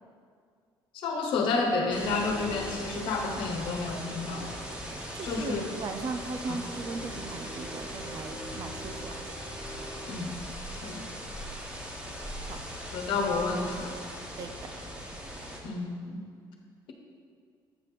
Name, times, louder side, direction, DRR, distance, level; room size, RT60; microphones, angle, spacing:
voice 1, 0.9-4.5 5.2-5.7 6.5-6.6 10.1-10.3 10.7-11.0 12.9-13.9 15.6-16.2, left 3 dB, 75° left, 2 dB, 1.2 m, -30 dB
sound 1, 1.9-15.6, equal, 10° right, 1.3 m, -39 dB
voice 2, 5.1-9.2 12.4-12.6 14.4-14.5, right 4 dB, 45° right, 7 dB, 0.5 m, -38 dB
7.8 x 5.8 x 4.9 m, 2.2 s
cardioid pair, 135°, 9 cm